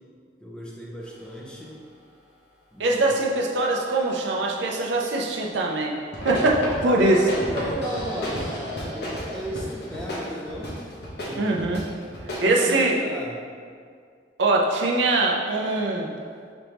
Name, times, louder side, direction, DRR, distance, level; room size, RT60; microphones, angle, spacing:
voice 1, 0.4-1.8 2.7-3.0 6.8-10.8 11.3-11.5 12.4-13.4, equal, 5° left, -5 dB, 0.6 m, -34 dB
voice 2, 2.8-5.9 6.2-7.2 11.4-11.8 12.4-12.9 14.4-16.1, right 2 dB, 70° right, -1 dB, 0.5 m, -22 dB
sound 1, 6.1-12.5, equal, 65° left, 1.0 m, -32 dB
5.1 x 3.4 x 3.0 m, 2.1 s
head